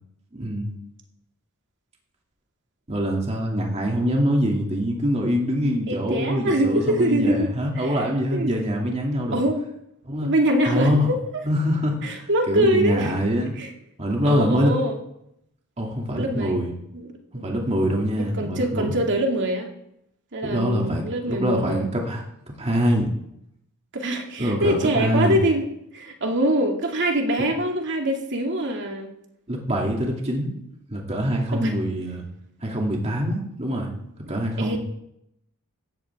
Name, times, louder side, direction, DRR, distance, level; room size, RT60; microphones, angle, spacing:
voice 1, 0.3-0.8 2.9-9.4 10.0-10.3 10.6-11.1 11.4-13.5 14.0-14.7 15.8-16.7 17.3-19.0 20.4-22.2 22.6-23.1 24.4-25.4 29.5-30.5 30.9-32.2 32.6-33.9 34.3-34.8, equal, 30° right, -1 dB, 2.6 m, -24 dB
voice 2, 5.9-7.5 7.8-7.9 8.3-8.5 9.3-9.6 10.2-11.2 12.0-13.1 13.6-13.7 14.2-14.9 16.1-16.6 16.9-17.5 18.4-19.7 20.3-21.9 23.9-25.7 25.9-29.1 31.5-31.7 34.6-34.8, right 1 dB, 55° right, 2 dB, 2.5 m, -24 dB
16.5 x 13.5 x 3.6 m, 0.77 s
head